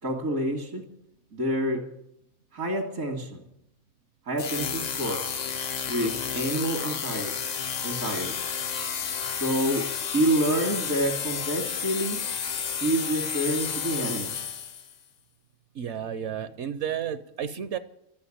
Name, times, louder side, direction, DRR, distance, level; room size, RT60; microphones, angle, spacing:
voice 1, 0.0-0.8 1.3-1.9 2.5-3.4 4.3-5.2 5.9-7.4 7.8-8.4 9.4-9.9 10.1-12.2 12.8-14.3, right 1 dB, 85° right, -3 dB, 2.3 m, -28 dB
sound 1, 4.4-14.9, left 7 dB, 55° left, 0.5 m, -31 dB
voice 2, 15.7-17.8, right 9 dB, 65° right, 12 dB, 0.9 m, -32 dB
13.0 x 8.5 x 9.8 m, 0.81 s
omnidirectional pair, 1.4 m